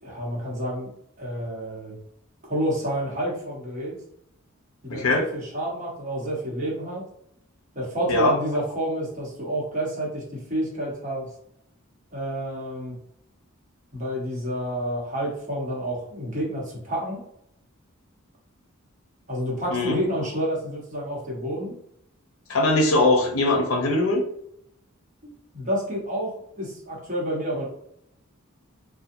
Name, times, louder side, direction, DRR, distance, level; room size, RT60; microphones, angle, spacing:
voice 1, 0.0-0.9 1.2-2.0 2.5-4.0 4.8-7.0 7.7-11.3 12.1-13.0 13.9-17.2 19.3-21.8 25.2-27.7, right 1 dB, 35° right, -4 dB, 1.0 m, -29 dB
voice 2, 4.9-5.2 8.1-8.4 19.7-20.0 22.5-24.2, left 2 dB, 75° left, 3 dB, 0.6 m, -21 dB
2.6 x 2.1 x 2.6 m, 0.73 s
head